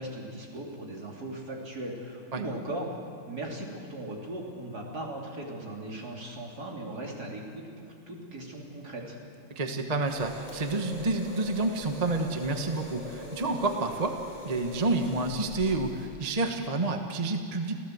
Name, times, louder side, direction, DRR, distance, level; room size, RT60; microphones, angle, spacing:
voice 1, 0.0-2.9 3.2-9.2, right 1 dB, 45° right, -1 dB, 3.8 m, -38 dB
voice 2, 9.5-14.2 14.4-17.7, right 2 dB, 25° right, 5 dB, 0.9 m, -29 dB
sound 1, 10.1-16.1, equal, 70° left, 8.1 m, -43 dB
27.0 x 16.5 x 7.9 m, 2.4 s
omnidirectional pair, 2.4 m